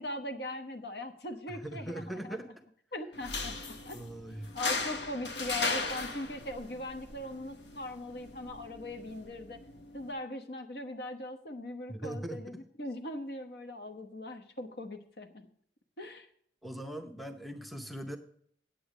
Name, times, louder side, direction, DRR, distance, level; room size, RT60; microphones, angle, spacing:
voice 1, 0.0-2.4 2.9-3.5 3.8-4.0 4.5-9.6 9.9-15.5 16.0-16.3, left 1 dB, 65° left, 7 dB, 1.1 m, -40 dB
voice 2, 1.5-2.5 3.9-4.5 11.9-12.4 16.6-18.2, right 1 dB, ahead, 5 dB, 0.6 m, -40 dB
sound 1, 3.1-10.1, left 3 dB, 80° left, 1.3 m, -38 dB
8.6 x 8.5 x 4.9 m, 0.64 s
head